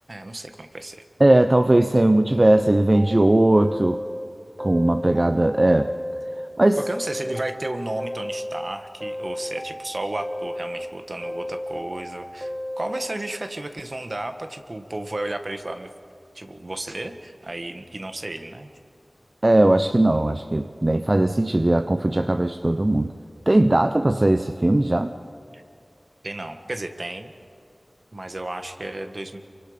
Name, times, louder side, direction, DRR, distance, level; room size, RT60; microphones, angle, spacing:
voice 1, 0.1-1.0 6.9-15.9 16.3-18.7 25.5-25.6 26.2-27.3 28.1-29.4, right 1 dB, 55° right, 7 dB, 1.6 m, -33 dB
voice 2, 1.2-4.0 4.6-5.9 6.6-6.8 19.4-23.1 23.5-25.1, right 1 dB, 40° right, 8 dB, 0.7 m, -19 dB
sound 1, 2.4-4.3 4.6-6.5 6.8-8.7 9.0-10.9 11.2-13.1, equal, 5° right, 1.3 m, -33 dB
28.0 x 24.5 x 5.1 m, 2.4 s
wide cardioid pair, 50°, 0 cm